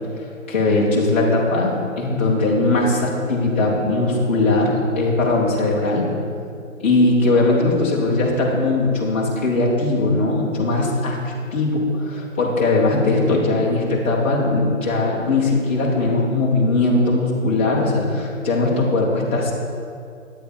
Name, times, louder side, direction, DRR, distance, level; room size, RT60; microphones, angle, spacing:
voice 1, 0.5-6.1 6.8-19.5, left 2 dB, 10° left, -7 dB, 0.7 m, -19 dB
11.0 x 8.8 x 3.5 m, 2.4 s
hypercardioid pair, 160°, 41 cm